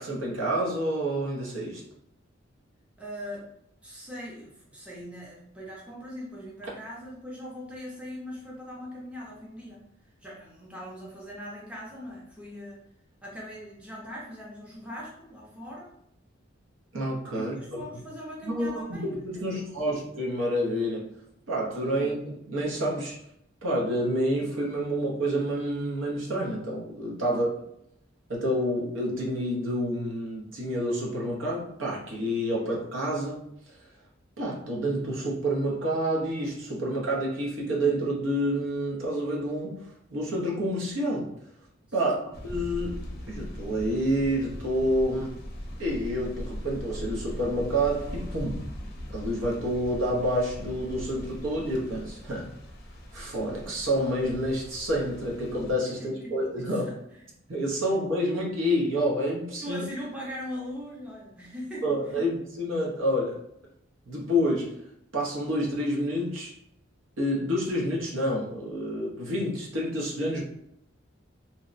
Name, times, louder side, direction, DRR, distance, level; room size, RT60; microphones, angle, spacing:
voice 1, 0.0-1.8 16.9-17.5 18.4-21.1 21.5-23.1 23.6-27.5 28.3-33.5 34.4-39.8 40.1-41.3 41.9-43.0 43.3-45.4 45.8-48.7 49.1-52.5 53.1-56.9 57.5-59.8 61.8-63.4 64.1-64.7 65.1-66.5 67.2-70.4, equal, 85° right, -3 dB, 0.7 m, -28 dB
voice 2, 3.0-3.5 3.8-9.8 10.2-12.8 13.2-15.9 17.3-19.8 21.9-22.2 27.2-27.5 32.6-32.7 41.9-42.2 56.0-57.2 59.6-62.3, equal, 5° right, -5 dB, 0.5 m, -41 dB
sound 1, 42.3-55.7, equal, 50° left, 0.5 m, -40 dB
2.7 x 2.0 x 2.4 m, 0.75 s
head